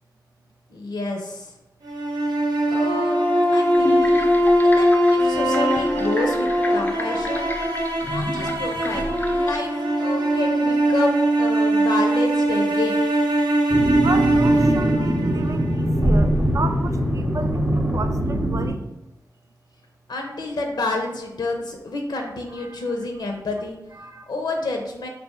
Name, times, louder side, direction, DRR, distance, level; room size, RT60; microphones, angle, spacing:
voice 1, 0.7-1.5 2.7-3.2 3.5-4.3 4.6-7.5 8.0-9.7 10.0-13.0 20.1-23.8 24.3-25.1, left 2 dB, 80° left, 2 dB, 0.6 m, -29 dB
sound 1, 1.8-16.0, right 1 dB, 85° right, 0.7 m, -21 dB
sound 2, 3.7-9.6, left 1 dB, 25° left, 0.3 m, -33 dB
sound 3, 13.7-18.7, right 1 dB, 15° right, 0.7 m, -22 dB
voice 2, 14.0-18.8 22.7-22.8 24.0-24.3, right 4 dB, 45° right, 8 dB, 0.3 m, -32 dB
3.3 x 2.6 x 4.3 m, 0.93 s
wide cardioid pair, 85°, 7 cm